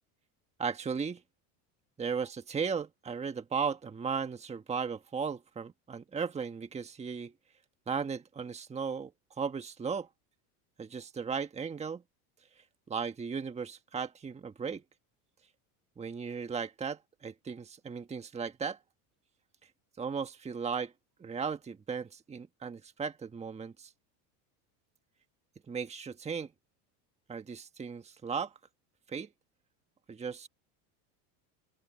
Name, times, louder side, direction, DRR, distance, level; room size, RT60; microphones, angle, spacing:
voice 1, 0.6-1.2 2.0-7.3 7.9-9.1 9.4-10.1 10.8-12.0 12.6-14.8 16.0-18.8 20.0-20.9 21.2-23.9 25.7-26.5 27.3-28.5 29.1-29.3 30.1-30.5, right 6 dB, 15° right, 1.4 m, -36 dB
open air
cardioid pair, 145°, 45 cm